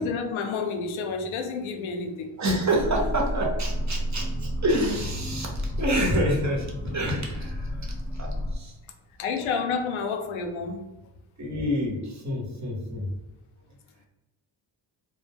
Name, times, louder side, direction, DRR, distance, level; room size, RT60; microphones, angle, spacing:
voice 1, 0.0-2.3 9.2-10.8, left 5 dB, 80° left, 4 dB, 0.6 m, -29 dB
voice 2, 2.4-8.7 11.4-13.1, equal, 35° right, -1 dB, 0.9 m, -28 dB
sound 1, 2.8-8.6, equal, 10° left, 0.5 m, -31 dB
2.2 x 2.1 x 3.3 m, 1.0 s
cardioid pair, 65°, 48 cm